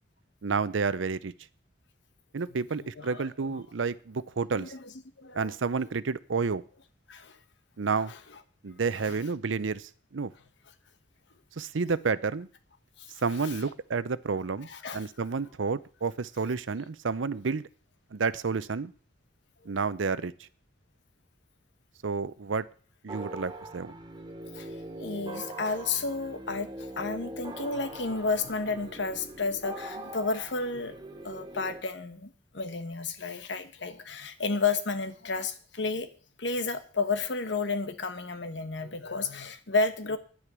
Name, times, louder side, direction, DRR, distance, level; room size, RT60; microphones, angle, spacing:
voice 1, 0.4-1.3 2.3-4.7 5.3-6.6 7.8-8.1 8.6-10.3 11.6-12.5 13.2-14.7 14.9-17.7 18.1-18.9 19.7-20.3 22.0-22.7 23.0-23.9, right 4 dB, 90° right, 0.6 m, -30 dB
voice 2, 2.8-3.6 4.5-4.9 5.2-5.5 7.1-7.4 8.0-8.2 9.0-9.2 13.0-13.1 13.4-13.5 14.6-15.0 24.5-24.7 25.0-36.1 36.4-40.2, left 4 dB, 70° left, 1.1 m, -32 dB
sound 1, 23.1-31.8, right 1 dB, 25° right, 1.1 m, -42 dB
10.5 x 9.9 x 6.1 m
head